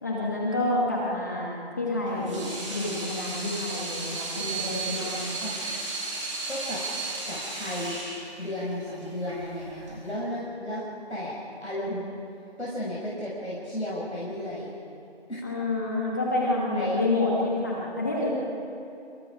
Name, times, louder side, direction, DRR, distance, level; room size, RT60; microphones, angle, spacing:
voice 1, 0.0-2.4 2.7-5.4 15.4-18.3, left 2 dB, 15° left, -4 dB, 2.2 m, -28 dB
Water tap faucet / Sink (filling or washing), 2.1-10.1, right 3 dB, 30° right, 6.0 m, -34 dB
voice 2, 6.5-6.9 7.3-8.0 8.4-10.8 11.1-12.1 12.6-14.7 15.3-15.4 16.7-17.0, left 1 dB, 90° left, -7 dB, 7.3 m, -33 dB
27.5 x 27.0 x 5.1 m, 2.7 s
figure-of-eight pair, 170°, 33 cm